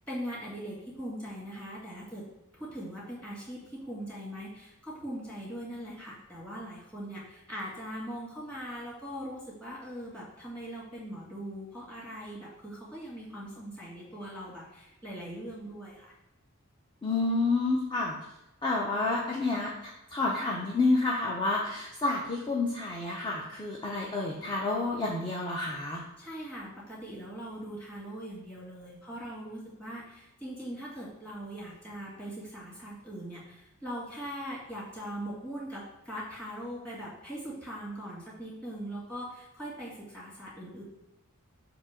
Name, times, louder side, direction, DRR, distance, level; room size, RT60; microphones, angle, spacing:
voice 1, 0.1-2.3 2.5-16.1 26.2-40.8, equal, 5° left, -7 dB, 2.0 m, -41 dB
voice 2, 17.0-18.2 18.6-26.0, left 3 dB, 20° left, -3 dB, 0.6 m, -29 dB
7.1 x 2.9 x 4.9 m, 0.95 s
head